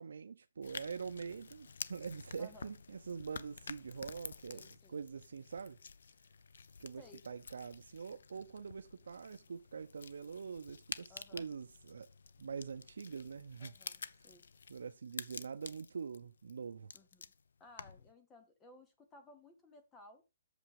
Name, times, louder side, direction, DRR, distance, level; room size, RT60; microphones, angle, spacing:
voice 1, 0.0-5.8 6.8-12.1 12.4-13.7 14.2-14.3 14.7-16.9, right 5 dB, 70° right, 0.7 m, -44 dB
sound 1, 0.6-18.1, left 5 dB, 65° left, 0.7 m, -50 dB
voice 2, 2.4-2.7 4.5-5.0 7.0-7.2 11.1-11.4 13.6-14.5 16.9-17.2 17.6-20.2, left 2 dB, 10° left, 0.8 m, -58 dB
8.1 x 6.9 x 4.8 m
hypercardioid pair, 180°, 0 cm